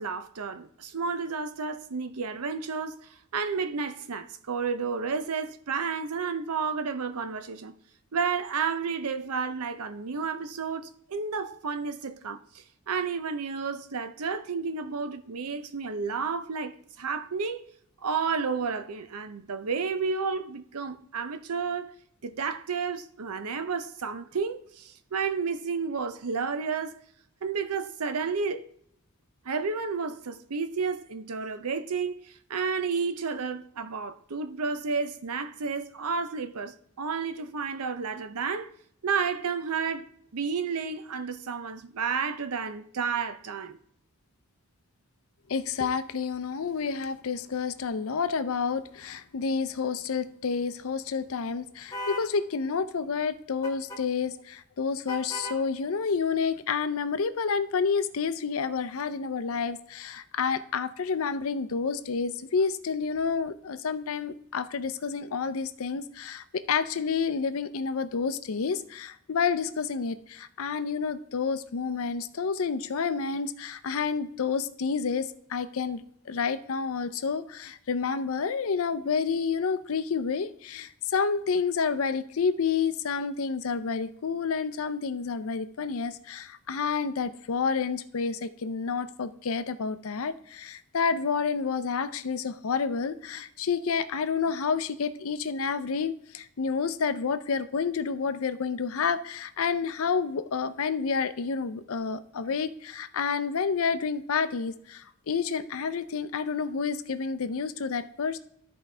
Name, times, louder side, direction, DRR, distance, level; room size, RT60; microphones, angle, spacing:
voice 1, 0.0-7.7 8.1-17.6 18.0-21.9 22.2-27.0 27.4-28.7 29.4-38.7 39.0-43.8, right 5 dB, 85° right, 0.7 m, -31 dB
voice 2, 45.5-108.4, left 5 dB, 70° left, 0.5 m, -29 dB
sound 1, 51.9-52.3 53.6-54.0 55.1-55.6, equal, 15° left, 1.2 m, -36 dB
13.5 x 4.7 x 3.3 m
head